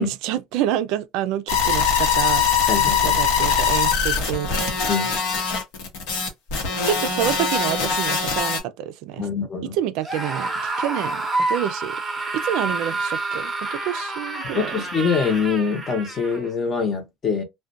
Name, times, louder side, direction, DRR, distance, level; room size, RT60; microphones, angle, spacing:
voice 1, 0.0-2.4 3.0-4.7 6.8-9.3 9.7-11.2 11.5-12.0 12.3-14.8, right 11 dB, 70° right, 0.3 m, -27 dB
sound 1, 1.5-8.6, left 6 dB, 80° left, 0.8 m, -22 dB
voice 2, 2.7-3.2 4.9-5.1 9.2-9.8 14.5-17.4, left 5 dB, 30° left, 0.7 m, -24 dB
Screaming, 10.0-16.5, right 2 dB, 10° right, 0.7 m, -28 dB
2.4 x 2.1 x 2.5 m
cardioid pair, 145°, 0 cm